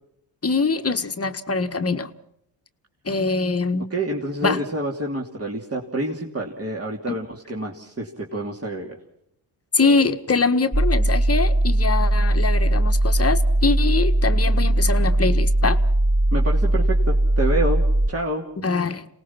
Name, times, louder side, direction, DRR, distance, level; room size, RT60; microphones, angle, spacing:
voice 1, 0.4-2.1 3.0-3.9 4.4-4.6 7.1-7.2 9.7-15.8 18.6-19.1, left 4 dB, 30° left, 8 dB, 1.6 m, -23 dB
voice 2, 3.9-9.0 16.3-18.5, right 1 dB, 30° right, -1 dB, 3.1 m, -28 dB
sound 1, 10.7-18.1, right 1 dB, 5° right, 0.8 m, -19 dB
27.5 x 19.0 x 6.0 m, 0.74 s
supercardioid pair, 55°, 48 cm